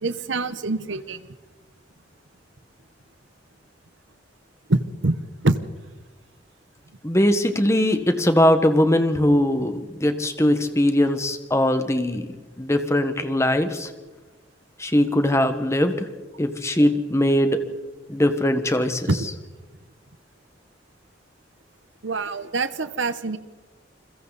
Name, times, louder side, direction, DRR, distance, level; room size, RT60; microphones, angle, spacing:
voice 1, 0.0-1.2 4.7-5.2 5.4-5.6 19.1-19.3 22.0-23.4, right 2 dB, 85° right, 13 dB, 1.0 m, -24 dB
voice 2, 7.0-12.3 12.6-13.9 14.8-16.1 16.4-17.6 18.1-19.1, left 1 dB, 15° left, 8 dB, 1.5 m, -20 dB
29.5 x 22.0 x 4.1 m, 1.2 s
head